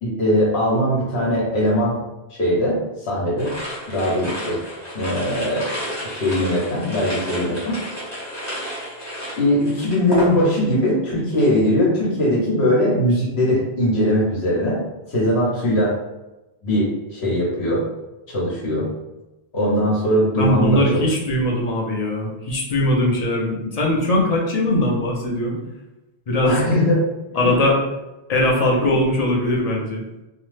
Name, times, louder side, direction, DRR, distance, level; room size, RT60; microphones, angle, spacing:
voice 1, 0.0-2.0 2.3-3.5 3.9-4.6 4.9-5.7 6.0-7.8 9.4-14.8 15.1-16.0 16.6-17.9 18.3-18.9 19.5-21.1 26.4-27.0 27.4-27.5 28.8-28.9, equal, 75° left, -5 dB, 1.1 m, -20 dB
sound 1, 3.4-10.8 11.1-11.5, equal, 15° left, 1.0 m, -31 dB
voice 2, 20.4-25.6 26.3-26.6 27.3-27.8 28.3-30.0, left 1 dB, 45° left, -2 dB, 0.6 m, -20 dB
2.8 x 2.0 x 3.1 m, 1.0 s
omnidirectional pair, 1.1 m